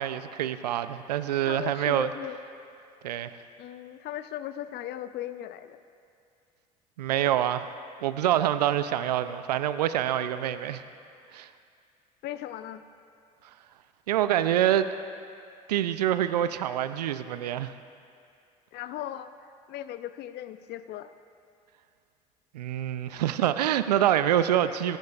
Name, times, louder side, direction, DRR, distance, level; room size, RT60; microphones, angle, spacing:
voice 1, 0.0-2.1 3.0-3.3 7.0-7.7 8.0-10.8 11.3-11.5 14.1-14.9 15.7-17.7 22.5-25.0, right 11 dB, 90° right, 12 dB, 0.4 m, -26 dB
voice 2, 1.4-2.4 3.6-5.8 12.2-12.8 18.7-19.3 19.7-21.1, left 12 dB, 55° left, 12 dB, 0.6 m, -37 dB
18.0 x 14.5 x 2.4 m, 2.4 s
hypercardioid pair, 65°, 20 cm